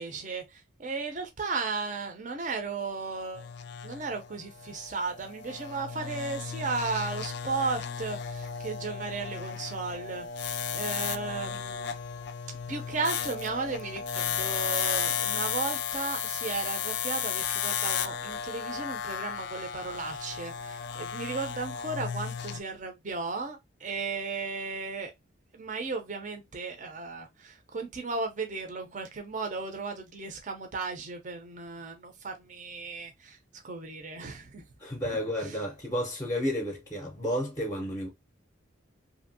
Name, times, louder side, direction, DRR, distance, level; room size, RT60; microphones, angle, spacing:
voice 1, 0.0-3.5 3.8-11.9 12.7-25.1 25.5-33.4 33.6-34.6, right 4 dB, 40° right, 0.5 m, -35 dB
sound 1, 3.3-22.6, left 8 dB, 55° left, 0.3 m, -34 dB
voice 2, 34.8-38.1, equal, 15° left, 0.6 m, -31 dB
2.8 x 2.6 x 2.6 m
head